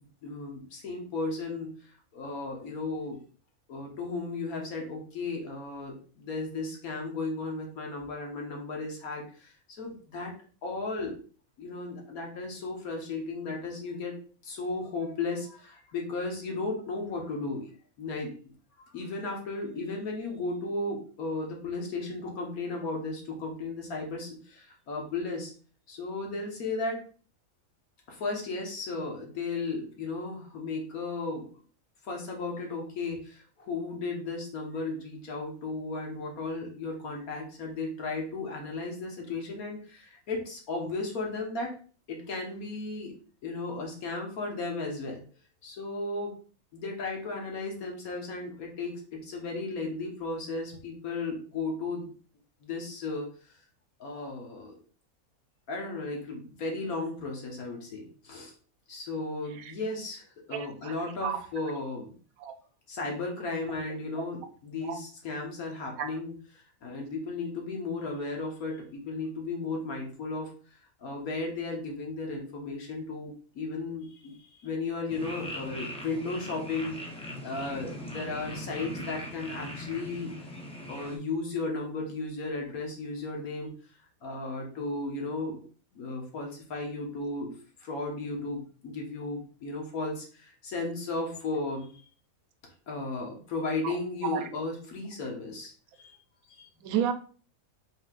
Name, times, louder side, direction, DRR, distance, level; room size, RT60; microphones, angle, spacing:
voice 1, 0.2-3.2 3.7-10.3 10.6-11.2 11.6-14.2 14.4-17.7 18.0-25.5 25.9-27.1 28.1-31.5 32.0-41.8 42.1-43.1 43.4-45.2 45.6-46.4 46.7-52.1 52.6-53.3 54.0-54.8 55.7-58.5 58.9-62.1 62.9-70.5 71.0-77.0 77.4-80.3 80.9-83.7 84.2-85.6 85.9-91.9 92.9-95.7 96.0-96.1 96.5-96.9, left 3 dB, 80° left, 1.7 m, -35 dB
voice 2, 60.5-60.9 61.2-61.4 62.4-62.5 64.8-65.0 66.0-66.1 93.8-93.9 94.3-94.4 96.8-97.1, right 9 dB, 80° right, 1.0 m, -31 dB
sound 1, 75.1-81.2, left 1 dB, 10° left, 0.3 m, -40 dB
5.1 x 3.8 x 2.4 m
omnidirectional pair, 1.5 m